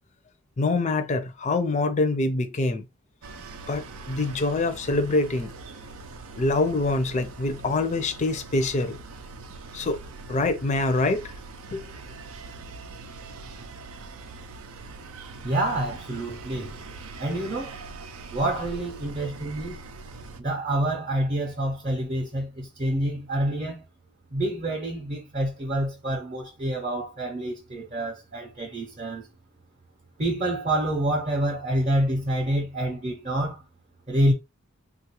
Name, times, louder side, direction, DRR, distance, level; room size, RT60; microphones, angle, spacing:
voice 1, 0.6-2.9 3.7-5.5 6.4-9.0 9.7-10.0 10.3-11.2 11.7-11.8, left 2 dB, 30° left, 0.5 m, -25 dB
sound 1, 3.2-20.4, right 3 dB, 75° right, 0.5 m, -42 dB
voice 2, 15.4-16.8 17.2-17.8 18.3-19.8 20.4-23.8 24.3-29.3 30.2-33.7 34.1-34.3, right 1 dB, 35° right, 0.6 m, -27 dB
3.5 x 2.4 x 2.9 m
head